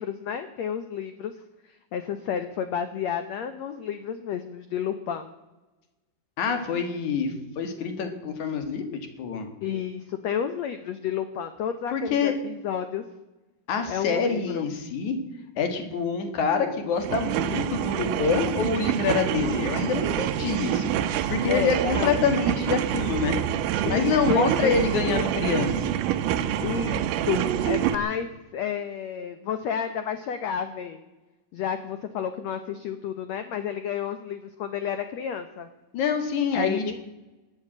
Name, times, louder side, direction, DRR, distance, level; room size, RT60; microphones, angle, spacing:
voice 1, 0.0-1.4 1.7-5.3 9.6-13.0 13.9-14.6 21.5-22.2 23.8-25.2 26.6-31.0 31.5-35.7 36.5-37.0, left 8 dB, 90° left, 9 dB, 1.5 m, -31 dB
voice 2, 6.4-8.8 9.2-9.5 11.9-12.3 13.7-15.2 15.6-20.9 21.3-23.4 23.8-25.9 35.9-37.0, left 5 dB, 55° left, 7 dB, 2.8 m, -26 dB
sound 1, 17.0-27.9, right 10 dB, 75° right, 2.0 m, -26 dB
21.0 x 8.0 x 8.7 m, 1.1 s
omnidirectional pair, 4.3 m